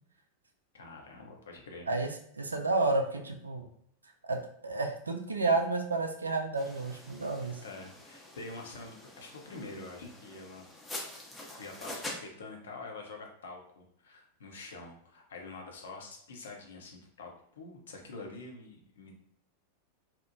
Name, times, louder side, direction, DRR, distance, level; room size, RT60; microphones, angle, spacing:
voice 1, 0.7-1.9 7.6-10.6 11.6-19.2, left 3 dB, 65° left, 1 dB, 0.5 m, -46 dB
voice 2, 2.4-3.7 4.2-7.6, right 3 dB, 75° right, 4 dB, 0.3 m, -31 dB
sound 1, 6.5-12.2, left 1 dB, 10° left, 0.5 m, -45 dB
2.8 x 2.0 x 2.6 m, 0.71 s
figure-of-eight pair, 90°, 0 cm